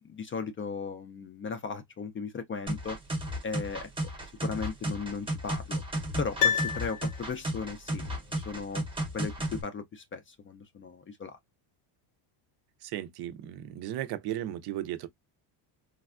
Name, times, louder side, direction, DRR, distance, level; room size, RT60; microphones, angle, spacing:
voice 1, 0.1-3.0 3.4-3.9 4.4-5.8 6.2-8.1 8.4-8.8 9.1-11.4, left 5 dB, 30° left, 0.4 m, -36 dB
sound 1, 2.7-9.6, right 1 dB, 10° right, 0.7 m, -33 dB
Piano, 6.4-7.6 7.9-8.0, left 8 dB, 85° left, 0.9 m, -29 dB
voice 2, 12.8-15.1, right 13 dB, 55° right, 0.5 m, -35 dB
3.3 x 2.3 x 2.3 m
cardioid pair, 130°, 46 cm